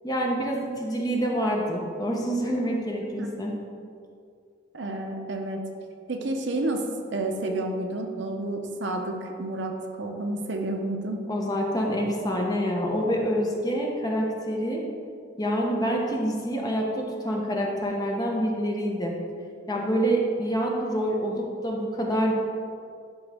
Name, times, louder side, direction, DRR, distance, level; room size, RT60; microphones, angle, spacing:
voice 1, 0.0-3.5 11.3-14.8 15.4-19.1 19.7-22.3, equal, 20° left, -1 dB, 0.8 m, -27 dB
voice 2, 3.2-3.5 4.7-5.6 6.1-6.8 7.1-9.7 10.0-11.2, right 2 dB, 60° right, 3 dB, 0.7 m, -30 dB
11.5 x 3.9 x 3.5 m, 2.4 s
head